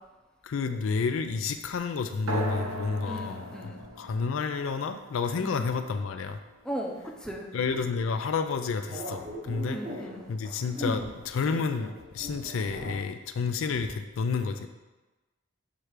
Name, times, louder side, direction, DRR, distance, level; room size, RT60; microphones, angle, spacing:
voice 1, 0.4-6.4 7.5-9.8 10.3-14.7, left 5 dB, 70° left, 8 dB, 0.4 m, -30 dB
sound 1, 2.3-7.3, right 1 dB, 80° right, 0.9 m, -39 dB
voice 2, 3.0-3.8 5.4-5.6 6.6-7.5 9.7-10.2 10.8-11.0 12.8-12.9, equal, 5° left, 0 dB, 0.6 m, -36 dB
sound 2, 7.5-12.9, equal, 35° right, 0.8 m, -43 dB
6.0 x 3.3 x 4.9 m, 1.1 s
head